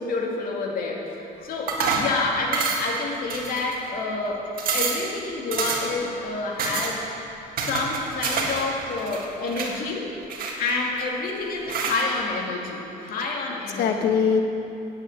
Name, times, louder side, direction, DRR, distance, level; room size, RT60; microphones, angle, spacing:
voice 1, 0.0-4.5 4.7-7.1 7.7-10.1 10.4-13.9, left 3 dB, 60° left, -1 dB, 2.2 m, -28 dB
sound 1, 1.7-2.1 2.5-3.0 3.3-3.9 4.3-4.4 4.6-5.1 5.5-6.0 6.6-6.9 7.6-8.6 8.9-9.7 10.3-11.0 11.7-12.0, right 4 dB, 60° right, 1.7 m, -27 dB
voice 2, 13.8-14.4, left 6 dB, 75° left, 4 dB, 1.2 m, -24 dB
8.8 x 8.8 x 7.9 m, 2.8 s
cardioid pair, 110°, 17 cm